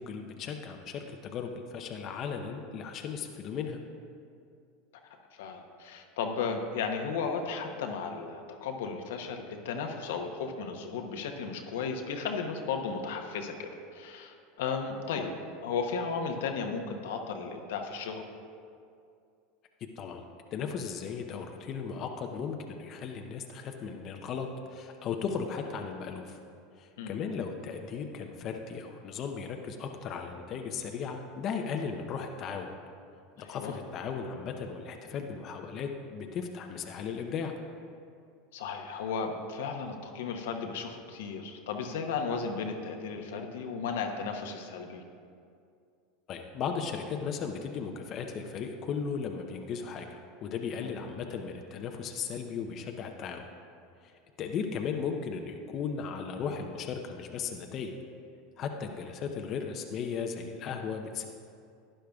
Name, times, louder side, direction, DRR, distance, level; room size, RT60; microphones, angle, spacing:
voice 1, 0.0-3.8 20.0-20.2 20.5-26.4 26.8-32.7 33.4-37.5 46.3-53.4 54.0-54.1 54.4-57.9 58.6-61.3, left 6 dB, 45° left, 4 dB, 0.7 m, -36 dB
voice 2, 5.3-15.3 15.6-18.3 27.0-27.2 33.4-33.8 38.5-45.0 50.8-50.9, left 5 dB, 80° left, 4 dB, 0.8 m, -35 dB
11.5 x 9.9 x 2.4 m, 2.4 s
hypercardioid pair, 100°, 0 cm